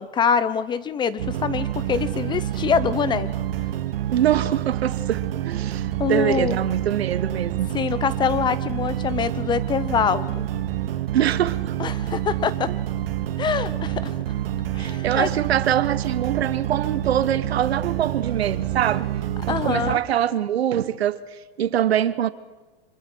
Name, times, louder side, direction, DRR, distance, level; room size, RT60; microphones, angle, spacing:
voice 1, 0.0-3.3 6.0-6.6 7.7-10.5 11.8-12.7 13.4-14.1 14.7-15.3 19.5-20.0, left 7 dB, 15° left, 0.6 m, -24 dB
sound 1, 1.2-20.0, right 12 dB, 65° right, 1.8 m, -28 dB
voice 2, 4.1-7.7 11.1-11.7 12.7-12.8 14.8-19.1 19.5-22.3, right 10 dB, 85° right, 1.3 m, -24 dB
25.5 x 23.0 x 4.6 m
hypercardioid pair, 140°, 31 cm